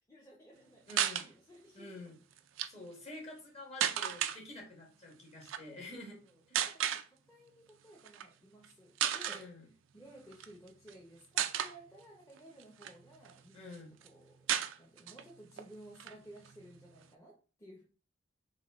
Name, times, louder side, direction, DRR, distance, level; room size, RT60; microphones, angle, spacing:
voice 1, 0.1-1.9 5.7-9.5 9.9-17.8, right 1 dB, 15° left, -4 dB, 0.8 m, -56 dB
voice 2, 0.9-1.3 1.7-2.2 2.7-6.2 6.5-6.9 9.3-9.7 13.5-14.0, left 2 dB, 35° left, -1 dB, 1.4 m, -49 dB
sound 1, 0.9-1.3 2.4-2.7 3.8-4.4 5.4-5.6 6.5-7.0 8.1-8.3 8.6-8.7 9.0-9.4 10.3-10.9 11.4-11.8 12.4-13.4 13.7-13.8 14.0-14.1 14.5-15.2 15.6-15.7 16.0-17.0, right 10 dB, 70° right, 0.4 m, -33 dB
4.1 x 3.3 x 3.6 m, 0.37 s
head